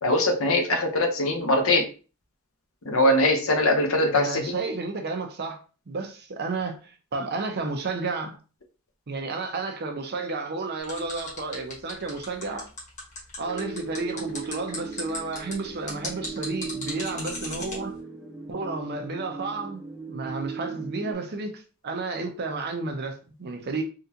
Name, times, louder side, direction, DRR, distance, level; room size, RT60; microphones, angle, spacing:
voice 1, 0.0-1.9 2.9-4.5, left 1 dB, 65° left, 0.8 m, -22 dB
voice 2, 4.1-5.6 5.9-8.4 9.1-12.7 13.4-18.0 18.5-19.8 20.1-23.8, right 3 dB, 45° right, 0.6 m, -32 dB
sound 1, 10.8-17.8, left 2 dB, 35° left, 1.4 m, -36 dB
sound 2, 13.4-21.1, right 4 dB, 5° right, 0.6 m, -38 dB
3.7 x 2.4 x 2.7 m
head